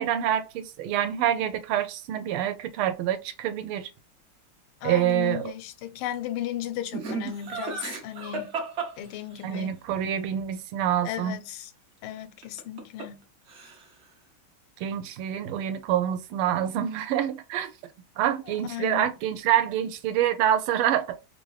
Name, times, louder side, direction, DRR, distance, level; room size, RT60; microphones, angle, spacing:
voice 1, 0.0-3.9 4.8-5.5 9.4-11.4 14.8-17.7 18.2-21.2, right 10 dB, 90° right, 1.5 m, -26 dB
voice 2, 4.8-8.6 9.0-9.8 11.0-11.7 12.0-13.2 18.5-19.1, left 12 dB, 85° left, 1.5 m, -35 dB
Laughter, 6.9-9.6 12.4-13.2 13.5-14.0, right 4 dB, 60° right, 0.7 m, -34 dB
3.5 x 2.6 x 3.1 m
omnidirectional pair, 2.3 m